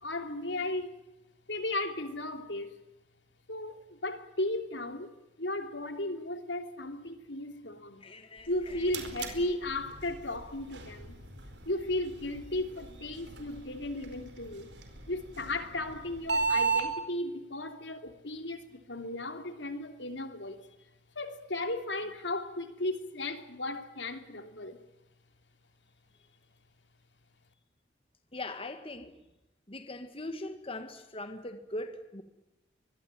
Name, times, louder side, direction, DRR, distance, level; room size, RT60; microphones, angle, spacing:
voice 1, 0.0-1.0 1.5-2.8 3.5-5.1 5.4-8.0 8.5-11.2 11.6-14.7 15.1-20.6 21.1-24.8, left 1 dB, 70° left, 8 dB, 3.0 m, -35 dB
voice 2, 8.0-8.9 28.3-29.1 29.7-32.2, left 2 dB, 30° left, 7 dB, 1.9 m, -41 dB
sound 1, 8.4-16.9, right 4 dB, 70° right, 4.7 m, -36 dB
24.5 x 21.0 x 9.1 m, 0.94 s
head